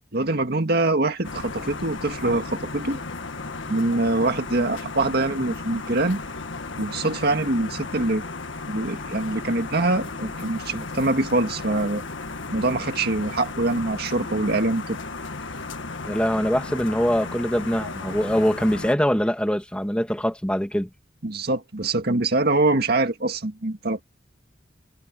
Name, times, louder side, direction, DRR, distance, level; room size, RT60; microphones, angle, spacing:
voice 1, 0.1-3.0 3.7-6.2 6.8-8.2 8.7-12.0 12.5-15.0 21.2-24.0, right 2 dB, 60° right, 1.9 m, -24 dB
sound 1, 1.2-18.9, left 3 dB, 90° left, 1.7 m, -35 dB
voice 2, 16.0-20.9, equal, 5° left, 2.6 m, -23 dB
head